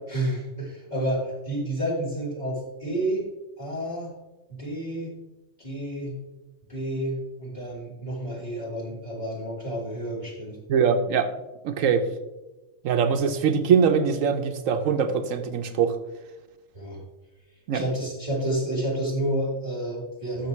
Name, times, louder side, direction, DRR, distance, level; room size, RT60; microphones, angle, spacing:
voice 1, 0.1-3.3 3.6-4.1 4.5-5.2 5.6-6.2 6.7-10.6 16.7-17.0 17.7-20.5, right 1 dB, 30° left, -6 dB, 3.9 m, -30 dB
voice 2, 10.7-11.3 11.6-12.0 12.8-16.0 17.7-17.8, right 6 dB, 75° right, 8 dB, 1.1 m, -22 dB
13.0 x 6.6 x 3.2 m, 1.1 s
omnidirectional pair, 1.4 m